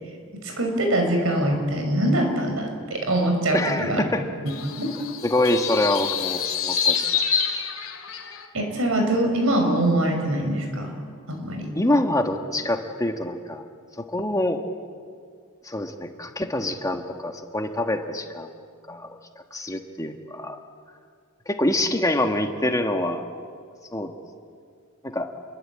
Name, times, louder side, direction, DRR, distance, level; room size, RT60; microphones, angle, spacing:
voice 1, 0.3-4.0 4.8-4.9 8.5-11.0 11.3-11.7, right 1 dB, 70° right, 3 dB, 6.2 m, -23 dB
voice 2, 3.5-4.2 5.3-7.2 11.7-13.6 14.1-14.6 15.6-18.5 18.9-19.2 19.5-20.6 21.5-23.4 23.9-24.1 25.0-25.3, left 1 dB, 15° left, 4 dB, 1.6 m, -25 dB
sound 1, 4.5-8.5, left 7 dB, 65° left, 2.5 m, -27 dB
29.0 x 23.0 x 8.8 m, 2.1 s
head